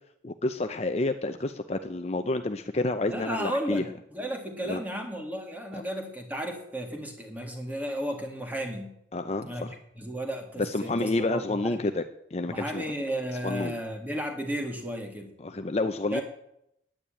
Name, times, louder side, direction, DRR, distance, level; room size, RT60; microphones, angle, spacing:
voice 1, 0.2-3.8 4.6-4.8 5.7-5.8 9.1-9.7 10.6-12.8 13.4-13.7 15.4-16.2, left 2 dB, 35° left, 8 dB, 0.6 m, -29 dB
voice 2, 3.1-9.0 9.4-11.9 12.5-15.3 16.1-16.2, equal, 10° right, 3 dB, 2.1 m, -34 dB
10.0 x 9.7 x 8.9 m, 0.77 s
head